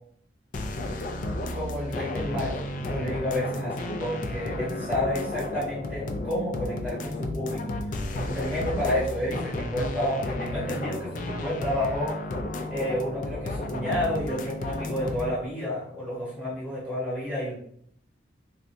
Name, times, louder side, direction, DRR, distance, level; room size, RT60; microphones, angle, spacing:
sound 1, 0.5-15.3, left 1 dB, 45° left, 0.3 m, -32 dB
voice 1, 1.5-12.2 12.7-17.5, left 1 dB, 5° right, -8 dB, 1.2 m, -30 dB
3.4 x 2.7 x 2.5 m, 0.67 s
head